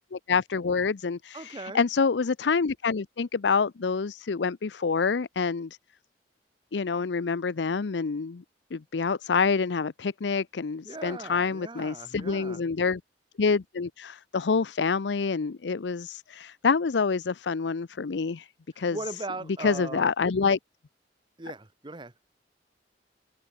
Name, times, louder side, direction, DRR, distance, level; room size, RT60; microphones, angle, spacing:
voice 1, 0.0-5.7 6.7-8.4 8.7-13.0 13.4-18.5 18.8-19.0 19.6-20.6, left 5 dB, 85° left, 0.6 m, -27 dB
voice 2, 1.3-1.8 10.8-12.6 18.7-20.1 21.4-22.1, right 2 dB, 30° right, 1.2 m, -39 dB
head